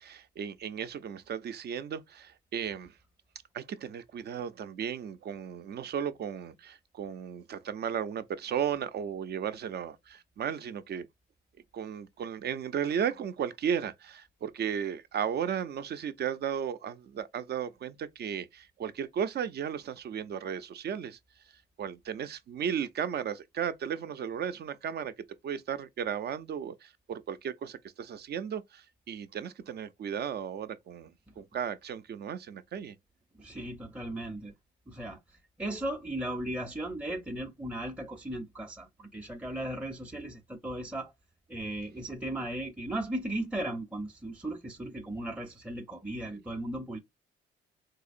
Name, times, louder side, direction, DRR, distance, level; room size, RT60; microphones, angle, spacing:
voice 1, 0.0-2.9 3.5-11.1 11.7-21.2 21.8-25.1 25.4-32.9, right 8 dB, 55° right, 0.5 m, -35 dB
voice 2, 33.4-34.5 34.9-35.2 35.6-41.1 41.5-47.0, right 1 dB, 5° right, 0.6 m, -36 dB
3.9 x 2.8 x 2.5 m
cardioid pair, 90°, 20 cm